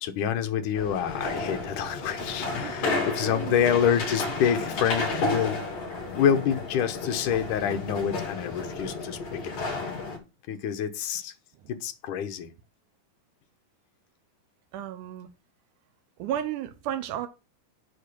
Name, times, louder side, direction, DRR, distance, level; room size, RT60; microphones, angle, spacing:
voice 1, 0.0-5.6 6.1-9.9 10.5-11.3 11.7-12.5, left 8 dB, 70° left, 2.4 m, -27 dB
sound 1, 0.7-10.2, left 3 dB, 45° left, 4.3 m, -32 dB
voice 2, 2.6-3.7 14.7-15.3 16.2-17.3, right 11 dB, 75° right, 2.2 m, -34 dB
9.9 x 4.4 x 7.0 m
omnidirectional pair, 4.0 m